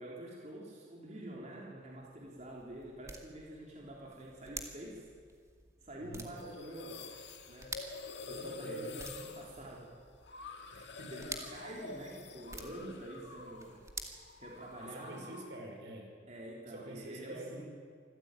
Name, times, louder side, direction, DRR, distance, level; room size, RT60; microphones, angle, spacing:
voice 1, 0.0-5.1 5.8-7.0 7.5-7.7 8.3-9.9 11.1-13.8 14.4-15.2 16.3-17.6, right 1 dB, 40° right, -3 dB, 3.6 m, -47 dB
sound 1, 1.8-15.0, right 3 dB, 15° right, 2.2 m, -50 dB
voice 2, 6.0-6.3 8.2-9.0 10.7-11.3 14.8-16.2 16.7-17.7, right 1 dB, 70° right, 2 dB, 5.6 m, -47 dB
sound 2, 6.4-13.8 14.0-15.6, left 3 dB, 65° left, 2.1 m, -48 dB
26.0 x 15.5 x 9.1 m, 2.1 s
head